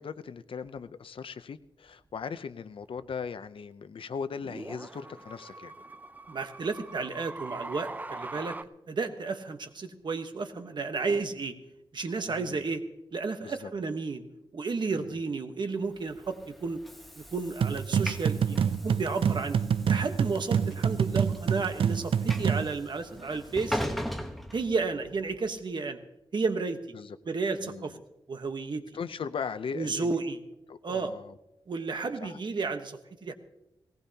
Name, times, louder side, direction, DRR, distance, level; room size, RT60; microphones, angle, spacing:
voice 1, 0.0-5.7 12.3-12.6 13.4-13.7 14.9-15.2 26.9-27.2 27.6-28.0 28.9-30.1 30.7-31.4 32.2-32.4, left 6 dB, 75° left, 12 dB, 0.6 m, -38 dB
sound 1, 0.7-0.8 3.0-3.1 4.2-8.6, right 2 dB, 20° right, 0.4 m, -42 dB
voice 2, 6.3-8.5 8.9-11.5 11.9-12.8 13.1-14.2 14.5-16.8 17.3-19.6 19.9-23.8 24.5-26.0 26.3-26.8 27.3-27.9 28.3-28.8 29.7-30.4 30.8-31.1 31.7-33.3, right 4 dB, 55° right, 7 dB, 1.1 m, -32 dB
Train / Sliding door, 16.0-25.3, equal, ahead, 1.0 m, -40 dB
sound 2, 17.6-22.7, right 7 dB, 85° right, 0.4 m, -27 dB
18.5 x 18.5 x 2.8 m, 0.88 s
wide cardioid pair, 155°, 9 cm